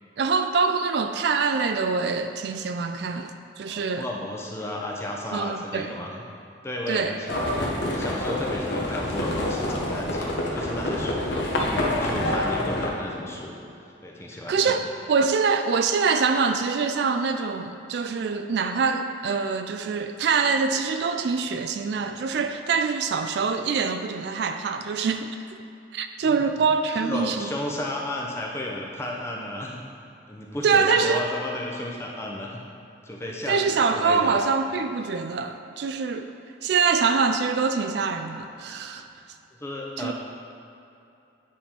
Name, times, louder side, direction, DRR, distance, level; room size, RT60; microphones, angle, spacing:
voice 1, 0.2-4.1 5.3-5.9 6.9-7.2 14.5-25.4 25.9-27.5 30.6-31.3 33.5-36.3 36.6-39.0 40.0-40.1, right 5 dB, 60° right, 7 dB, 0.3 m, -24 dB
voice 2, 3.7-6.2 6.6-11.3 11.6-13.6 14.0-14.8 26.2-26.4 26.9-29.8 30.3-32.6 33.0-34.4 39.6-40.1, left 1 dB, 15° left, -1 dB, 0.6 m, -33 dB
Livestock farm animals working animals, 7.3-12.9, left 1 dB, 70° left, 1.0 m, -27 dB
9.3 x 3.5 x 4.4 m, 2.7 s
head